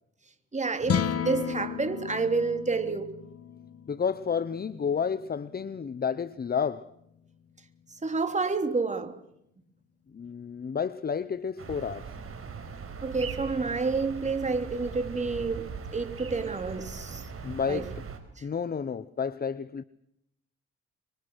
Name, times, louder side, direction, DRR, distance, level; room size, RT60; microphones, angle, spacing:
voice 1, 0.5-3.1 8.0-9.2 13.0-17.2 17.7-17.8, right 4 dB, 25° right, 3.2 m, -29 dB
sound 1, 0.8-7.2, left 8 dB, 50° left, 1.4 m, -35 dB
voice 2, 3.9-6.9 10.1-12.2 17.4-18.0 18.4-19.8, left 6 dB, 30° left, 0.9 m, -31 dB
sound 2, 11.6-18.2, right 6 dB, 45° right, 5.4 m, -40 dB
26.0 x 23.5 x 6.3 m
cardioid pair, 90°, 30 cm